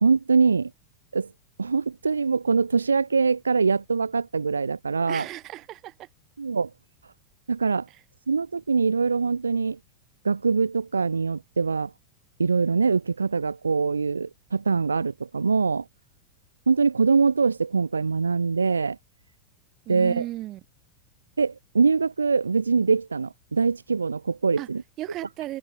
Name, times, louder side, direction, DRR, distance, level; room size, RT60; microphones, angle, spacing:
voice 1, 0.0-0.7 1.1-1.3 1.6-5.3 6.4-6.7 7.5-7.9 8.3-9.8 10.2-11.9 12.4-15.9 16.7-19.0 19.9-20.2 21.4-24.8, right 4 dB, 75° right, 0.6 m, -23 dB
voice 2, 5.1-6.1 19.8-20.6 24.6-24.7 25.0-25.6, right 15 dB, 35° right, 3.1 m, -35 dB
figure-of-eight pair, 90°, 0 cm